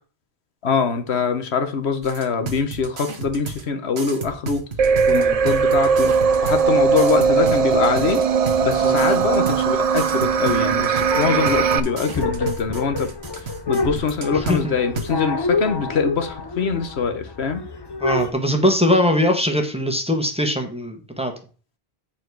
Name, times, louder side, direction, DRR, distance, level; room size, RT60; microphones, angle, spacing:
voice 1, 0.6-4.6 5.1-6.1 6.4-8.2 8.6-13.1 13.7-17.6, left 5 dB, 90° left, 7 dB, 1.3 m, -23 dB
sound 1, 2.0-3.6 4.0-6.6 7.0-9.6 10.0-14.6 15.0-15.1, right 4 dB, 85° right, 1.4 m, -32 dB
sound 2, 4.8-11.8, right 6 dB, 45° right, 0.5 m, -19 dB
sound 3, 11.1-18.3, left 3 dB, 25° left, 0.7 m, -28 dB
voice 2, 14.3-14.7 18.0-21.3, left 1 dB, 5° right, 4 dB, 1.3 m, -21 dB
9.2 x 4.3 x 4.7 m, 0.36 s
omnidirectional pair, 1.1 m